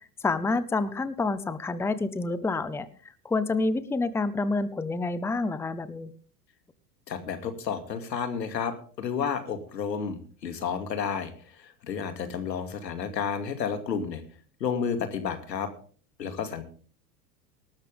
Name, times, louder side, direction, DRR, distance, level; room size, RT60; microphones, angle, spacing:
voice 1, 0.2-2.9 3.2-6.1, left 3 dB, 5° left, 15 dB, 0.7 m, -28 dB
voice 2, 7.1-14.2 14.6-15.7 16.2-16.6, left 6 dB, 85° left, 8 dB, 2.5 m, -31 dB
19.0 x 13.0 x 3.6 m, 0.43 s
hypercardioid pair, 95°, 49 cm